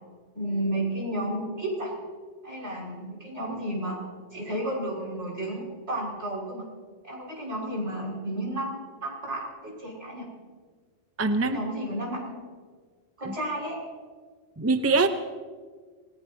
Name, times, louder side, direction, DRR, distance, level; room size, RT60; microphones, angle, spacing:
voice 1, 0.3-1.9 2.4-4.0 4.3-6.7 7.0-10.2 11.4-12.4 13.2-13.8, right 1 dB, 65° right, -3 dB, 6.1 m, -32 dB
voice 2, 11.2-11.6 13.3-13.4 14.6-15.1, right 3 dB, 15° right, 8 dB, 0.6 m, -23 dB
28.0 x 17.5 x 2.8 m, 1.5 s
omnidirectional pair, 1.3 m